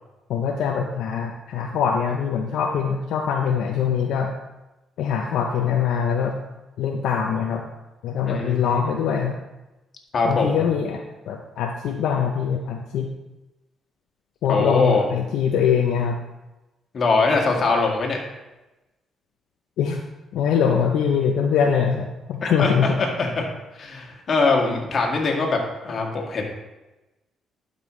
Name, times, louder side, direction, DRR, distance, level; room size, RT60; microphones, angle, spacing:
voice 1, 0.3-4.3 5.0-6.3 6.8-7.6 8.0-9.4 10.2-13.1 14.4-16.2 19.8-20.0 20.3-23.0, left 7 dB, 80° left, 2 dB, 0.6 m, -23 dB
voice 2, 8.3-8.8 10.1-10.6 14.5-15.1 16.9-18.2 22.4-23.5 23.8-26.4, left 3 dB, 50° left, 0 dB, 1.8 m, -22 dB
12.0 x 5.4 x 3.1 m, 1.0 s
cardioid pair, 90°, 0 cm